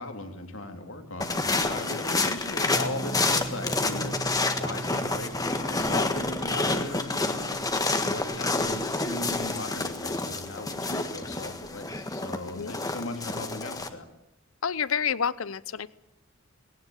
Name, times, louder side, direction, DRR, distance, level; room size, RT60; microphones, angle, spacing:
voice 1, 0.0-4.1 4.6-14.0, left 2 dB, 70° left, 5 dB, 3.4 m, -38 dB
sound 1, 1.2-13.9, left 3 dB, 20° left, 1.6 m, -29 dB
voice 2, 1.9-2.3 12.5-12.7 14.6-15.9, left 7 dB, 85° left, 19 dB, 0.8 m, -30 dB
sound 2, 2.6-9.5, right 2 dB, 50° right, 3.9 m, -41 dB
sound 3, 3.0-7.9 8.5-11.6, right 3 dB, 80° right, 4.0 m, -52 dB
19.0 x 17.5 x 9.2 m, 0.84 s
head